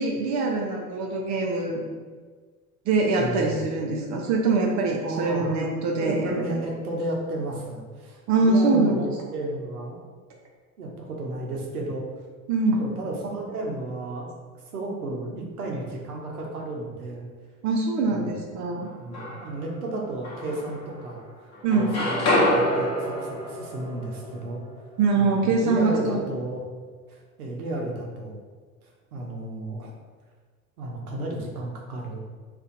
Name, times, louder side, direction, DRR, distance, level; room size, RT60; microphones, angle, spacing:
voice 1, 0.0-1.8 2.9-6.6 8.3-9.1 12.5-12.8 17.6-18.9 21.6-21.9 25.0-26.2, right 3 dB, 40° right, 0 dB, 0.6 m, -23 dB
voice 2, 3.2-3.6 5.0-5.5 6.0-10.0 10.8-12.1 12.8-14.3 14.7-17.3 18.0-18.3 19.0-21.2 21.7-24.6 25.2-26.6 27.1-28.4 29.1-29.9 30.8-32.2, right 2 dB, 85° right, -1 dB, 0.8 m, -33 dB
sound 1, 18.8-19.7 20.2-21.3 21.5-25.5, left 1 dB, 35° left, 1.0 m, -27 dB
2.6 x 2.4 x 3.8 m, 1.5 s
hypercardioid pair, 80°, 43 cm